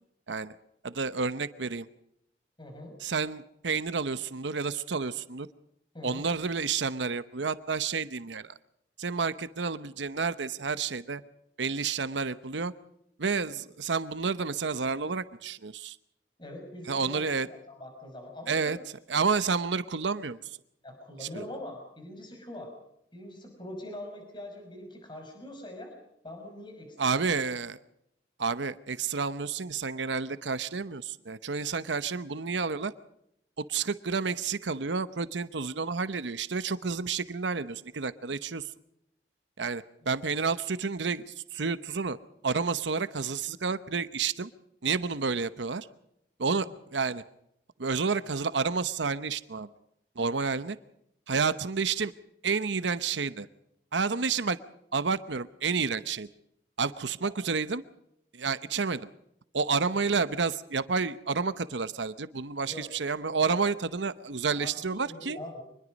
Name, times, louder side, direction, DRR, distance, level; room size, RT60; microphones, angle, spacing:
voice 1, 0.8-1.9 3.0-5.5 6.0-8.5 9.0-11.2 11.6-12.7 13.2-16.0 16.9-17.5 18.5-18.8 19.1-20.6 21.2-21.4 27.0-27.8 28.4-32.9 33.6-38.7 39.6-42.2 42.4-44.5 44.8-45.9 46.4-47.2 47.8-49.7 50.2-50.8 51.3-52.1 52.4-53.5 53.9-54.6 54.9-56.3 56.8-57.8 58.3-59.1 59.5-65.4, right 5 dB, 85° right, 14 dB, 0.9 m, -30 dB
voice 2, 2.6-3.0 5.9-6.3 16.4-18.8 19.1-19.2 20.8-22.7 23.1-25.9 26.2-27.2 46.5-46.7 57.2-57.4 62.7-62.9 64.6-64.7 65.1-65.6, left 1 dB, 25° left, 3 dB, 5.6 m, -43 dB
25.0 x 21.0 x 5.3 m, 0.78 s
head